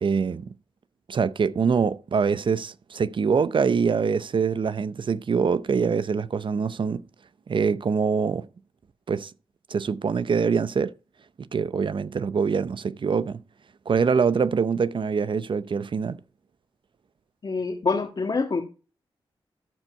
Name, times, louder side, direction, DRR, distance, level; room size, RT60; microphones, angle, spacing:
voice 1, 0.0-0.5 1.1-7.0 7.5-8.5 9.1-9.3 9.7-10.9 11.4-13.4 13.9-16.2, right 5 dB, 60° right, 0.6 m, -24 dB
voice 2, 17.4-18.6, left 4 dB, 50° left, 1.6 m, -26 dB
13.0 x 4.7 x 4.3 m
cardioid pair, 70°, 10 cm